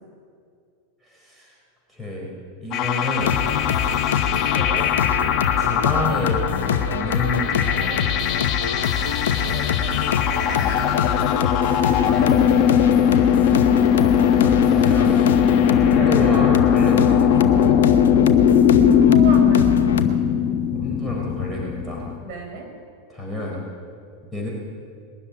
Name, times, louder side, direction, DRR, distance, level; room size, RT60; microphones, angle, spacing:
voice 1, 1.0-1.5 1.9-3.4 5.6-8.0 11.7-12.7 14.4-15.2 15.8-17.7 20.7-22.0 23.1-23.6 24.3-24.5, left 1 dB, 10° right, -3 dB, 4.5 m, -29 dB
sound 1, 2.7-22.2, left 8 dB, 45° left, 1.3 m, -19 dB
sound 2, 3.2-20.1, left 8 dB, 80° left, 0.8 m, -25 dB
voice 2, 4.5-4.9 9.3-11.3 13.0-13.4 15.5-16.2 18.7-20.2 22.2-22.7, right 3 dB, 45° right, 2 dB, 5.6 m, -34 dB
20.5 x 7.1 x 9.8 m, 2.3 s
hypercardioid pair, 100°, 0 cm